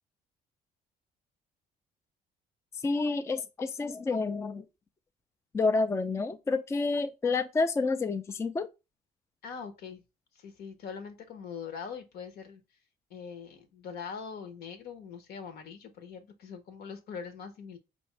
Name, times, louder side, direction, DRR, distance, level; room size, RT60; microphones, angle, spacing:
voice 1, 2.8-4.6 5.5-8.7, left 3 dB, 15° left, 0.3 m, -29 dB
voice 2, 9.4-10.0 10.3-12.6 13.1-17.8, left 6 dB, 70° left, 1.0 m, -42 dB
4.5 x 2.6 x 3.2 m
cardioid pair, 110°, 17 cm